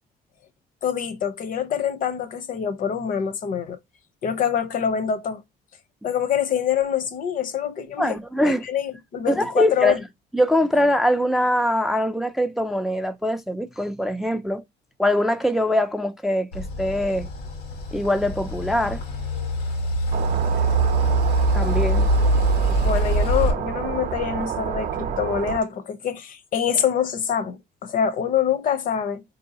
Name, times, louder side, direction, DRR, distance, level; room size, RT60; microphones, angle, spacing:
voice 1, 0.8-3.8 4.2-5.4 6.0-10.0 22.8-29.2, left 8 dB, 55° left, 0.7 m, -25 dB
voice 2, 8.0-8.7 9.3-10.0 10.3-14.6 15.0-17.3 17.9-19.0 21.5-22.1, left 1 dB, ahead, 0.3 m, -22 dB
sound 1, 16.5-23.5, right 2 dB, 90° left, 1.4 m, -23 dB
sound 2, 20.1-25.6, right 7 dB, 50° right, 0.6 m, -29 dB
4.4 x 2.7 x 2.7 m
cardioid pair, 110°, 17 cm